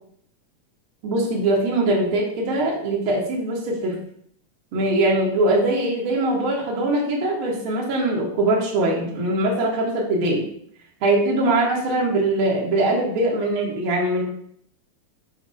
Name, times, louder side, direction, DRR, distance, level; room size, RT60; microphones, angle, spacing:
voice 1, 1.0-4.0 4.7-10.4 11.0-14.2, right 2 dB, 50° right, -3 dB, 1.9 m, -22 dB
7.0 x 2.9 x 5.0 m, 0.67 s
omnidirectional pair, 3.4 m